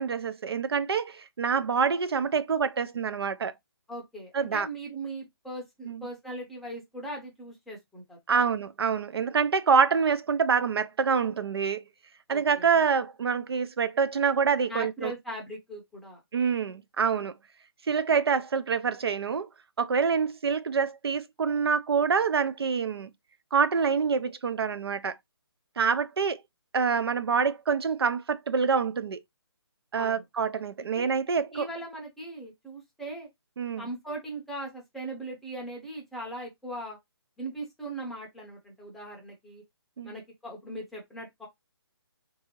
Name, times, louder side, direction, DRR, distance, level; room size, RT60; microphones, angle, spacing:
voice 1, 0.0-3.5 4.3-4.7 5.8-6.1 8.3-11.8 12.3-15.1 16.3-17.3 17.9-19.5 19.8-23.1 23.5-25.1 25.8-26.4 26.7-29.2 29.9-31.7 33.6-33.9 40.0-40.1, right 6 dB, 70° right, 0.4 m, -26 dB
voice 2, 3.9-8.4 12.3-12.7 14.7-16.2 29.9-30.2 30.9-31.1 31.5-33.3 33.8-37.0 37.4-39.6 40.0-41.5, right 1 dB, ahead, 0.6 m, -39 dB
3.5 x 2.6 x 2.8 m
figure-of-eight pair, 155°, 14 cm